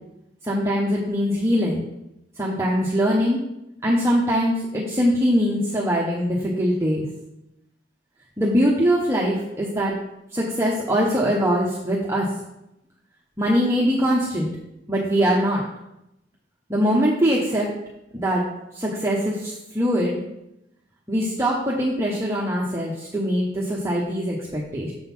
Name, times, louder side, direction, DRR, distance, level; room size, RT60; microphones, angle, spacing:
voice 1, 0.4-1.8 2.4-3.4 3.8-7.0 8.4-9.9 10.3-12.3 13.4-14.5 14.9-15.6 16.7-17.7 18.1-18.4 18.7-20.2 21.1-24.9, equal, 15° right, -5 dB, 0.9 m, -22 dB
6.9 x 3.8 x 5.9 m, 0.87 s
head